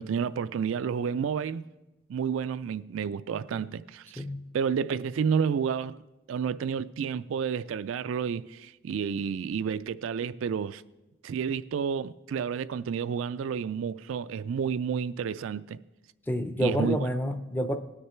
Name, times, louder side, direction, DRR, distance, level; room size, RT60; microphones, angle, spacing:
voice 1, 0.0-1.6 2.1-4.2 4.5-6.0 6.3-10.8 11.2-15.8 16.6-17.0, right 7 dB, 65° right, 0.3 m, -30 dB
voice 2, 16.3-17.8, equal, 10° left, 0.5 m, -28 dB
19.0 x 6.6 x 4.4 m
head